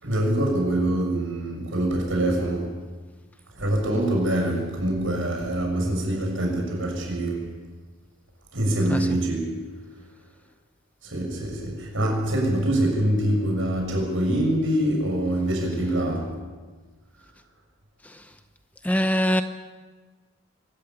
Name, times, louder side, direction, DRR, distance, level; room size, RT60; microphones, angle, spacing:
voice 1, 0.0-2.9 3.5-7.6 8.5-9.7 11.0-16.4, right 1 dB, 65° right, 6.8 m, -25 dB
voice 2, 18.8-19.4, equal, 5° left, 0.7 m, -23 dB
24.0 x 14.0 x 9.0 m
head